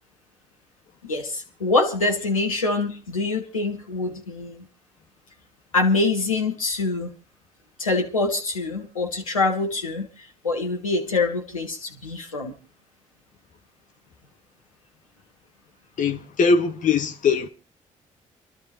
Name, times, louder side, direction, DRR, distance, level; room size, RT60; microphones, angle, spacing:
voice 1, 1.0-4.7 5.7-7.1 7.8-10.1 10.4-12.5, left 3 dB, 85° left, 1.3 m, -25 dB
voice 2, 16.0-17.5, left 4 dB, 50° left, 1.3 m, -21 dB
29.5 x 12.5 x 2.5 m
figure-of-eight pair, 40°, 17 cm